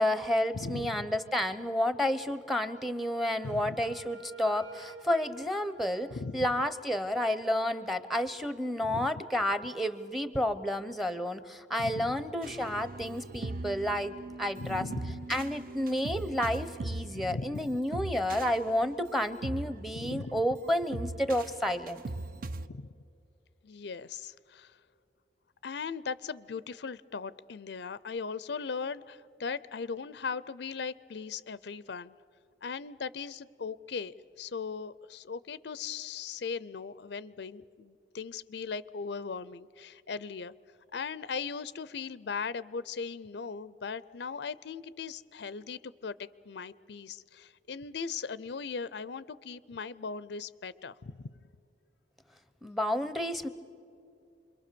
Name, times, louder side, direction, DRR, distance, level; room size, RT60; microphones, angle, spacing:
voice 1, 0.0-14.8 15.3-22.0 52.6-53.5, left 1 dB, ahead, 13 dB, 0.7 m, -30 dB
voice 2, 0.5-1.1 3.4-3.8 6.1-6.5 8.8-9.1 11.8-12.2 14.6-15.2 17.1-17.7 19.9-20.4 22.6-22.9 23.6-24.8 25.6-32.1 32.6-40.5 40.9-51.3, left 5 dB, 65° left, 18 dB, 0.5 m, -38 dB
Wind instrument woodwind instrument, 3.0-6.9, equal, 85° right, 2.7 m, -51 dB
sound 1, 12.4-22.7, right 2 dB, 50° right, 0.6 m, -40 dB
27.5 x 22.5 x 6.9 m, 2.5 s
head